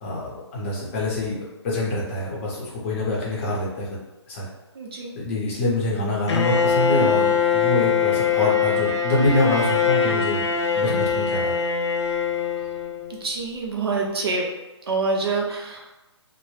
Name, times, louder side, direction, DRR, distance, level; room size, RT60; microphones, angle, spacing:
voice 1, 0.0-3.9 4.3-4.5 5.2-10.5 10.7-11.6, left 2 dB, 25° left, -5 dB, 0.7 m, -25 dB
voice 2, 4.7-5.2 13.1-14.5 14.9-15.9, right 4 dB, 60° right, -1 dB, 0.7 m, -26 dB
Bowed string instrument, 6.3-13.2, left 6 dB, 80° left, 0.4 m, -22 dB
2.1 x 2.0 x 3.1 m, 1.1 s
hypercardioid pair, 160°, 15 cm